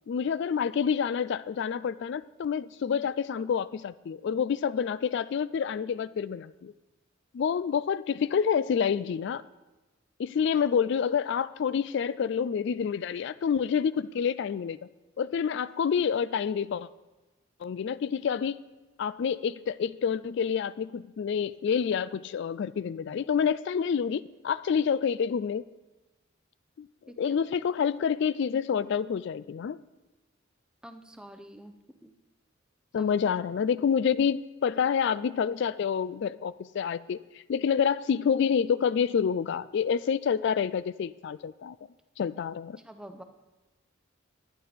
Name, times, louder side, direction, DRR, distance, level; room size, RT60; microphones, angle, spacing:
voice 1, 0.1-6.7 7.3-9.4 10.2-14.8 15.2-16.9 17.6-18.6 19.0-25.6 26.8-26.9 27.2-29.8 32.9-41.8 42.2-42.8, left 7 dB, 60° left, 17 dB, 0.3 m, -28 dB
voice 2, 27.1-27.4 30.8-31.7 32.0-32.1 33.0-33.1 42.8-43.2, right 1 dB, 5° right, 7 dB, 0.7 m, -46 dB
11.0 x 10.5 x 5.1 m, 1.1 s
head